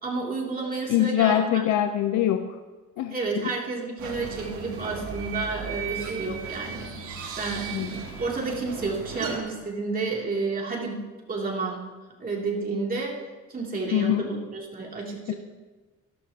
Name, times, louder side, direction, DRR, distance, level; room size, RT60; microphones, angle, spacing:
voice 1, 0.0-1.6 3.1-11.0 11.3-11.9 12.2-13.2 13.5-15.3, right 3 dB, 25° right, -2 dB, 2.9 m, -31 dB
voice 2, 0.9-2.6 3.0-3.5 7.7-7.9 13.9-14.3 15.3-15.4, left 11 dB, 65° left, 8 dB, 0.8 m, -24 dB
sound 1, 4.0-9.4, right 6 dB, 65° right, 3.4 m, -36 dB
26.0 x 13.0 x 2.9 m, 1.3 s
cardioid pair, 150°, 31 cm